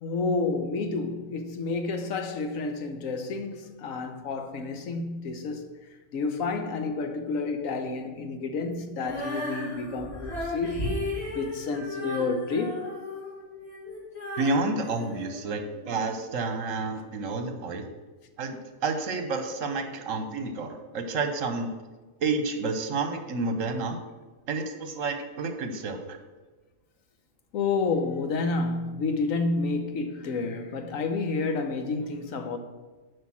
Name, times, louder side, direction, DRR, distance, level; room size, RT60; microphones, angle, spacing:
voice 1, 0.0-5.7 6.1-10.9 11.3-12.8 27.5-32.6, left 3 dB, 80° left, 1.3 m, -30 dB
Female singing, 9.0-16.0, left 1 dB, 50° left, 2.6 m, -35 dB
voice 2, 14.4-17.9 18.4-21.7 22.2-24.0 24.5-26.2, right 3 dB, 75° right, 1.3 m, -30 dB
7.9 x 5.2 x 6.1 m
omnidirectional pair, 1.4 m